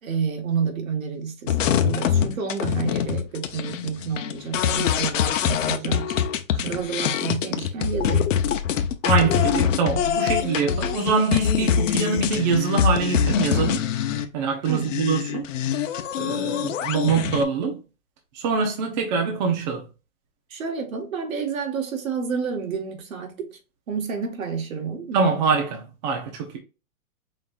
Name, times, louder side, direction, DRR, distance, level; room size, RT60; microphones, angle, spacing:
voice 1, 0.0-6.3 6.6-8.3 14.7-15.0 15.3-15.4 20.5-23.6 23.9-25.2, right 6 dB, 70° right, 1.7 m, -29 dB
sound 1, 1.5-14.2 14.7-17.4, left 8 dB, 60° left, 0.8 m, -24 dB
voice 2, 9.0-13.9 14.3-15.5 16.2-17.8 18.3-19.9 25.1-26.6, right 5 dB, 30° right, 1.0 m, -24 dB
5.0 x 3.9 x 2.5 m
hypercardioid pair, 165°, 42 cm